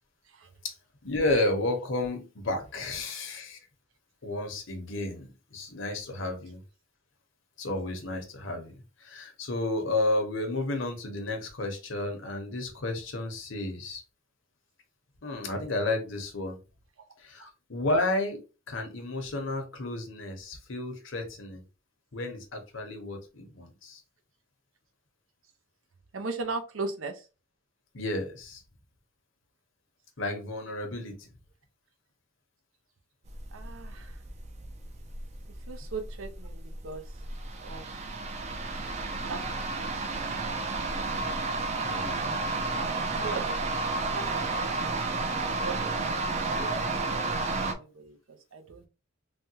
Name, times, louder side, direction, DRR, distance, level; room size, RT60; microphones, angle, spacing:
voice 1, 1.0-3.6 4.2-6.6 7.6-14.0 15.2-16.6 17.2-18.4 18.7-21.6 22.1-24.0 27.9-28.6 30.2-31.3 41.8-42.7, left 2 dB, 65° left, 4 dB, 0.8 m, -32 dB
voice 2, 26.1-27.2 33.5-34.2 35.7-37.0 37.6-37.9 39.2-39.4 39.8-40.0 42.2-43.5 44.1-44.3 44.6-48.9, right 4 dB, 80° right, 6 dB, 0.6 m, -39 dB
sound 1, 33.3-47.7, right 3 dB, 35° right, 0.4 m, -32 dB
3.4 x 2.2 x 2.7 m, 0.31 s
head